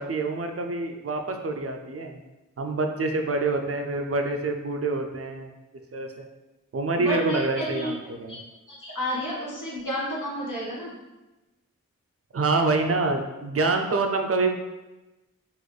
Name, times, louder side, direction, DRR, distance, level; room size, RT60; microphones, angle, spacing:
voice 1, 0.0-2.2 2.6-5.5 5.9-6.3 6.7-8.4 12.3-14.6, right 3 dB, 50° right, 4 dB, 0.4 m, -26 dB
voice 2, 7.0-7.9 8.3-8.4 8.7-10.9, equal, 75° left, -5 dB, 1.3 m, -31 dB
4.0 x 2.5 x 3.2 m, 1.1 s
wide cardioid pair, 65°, 32 cm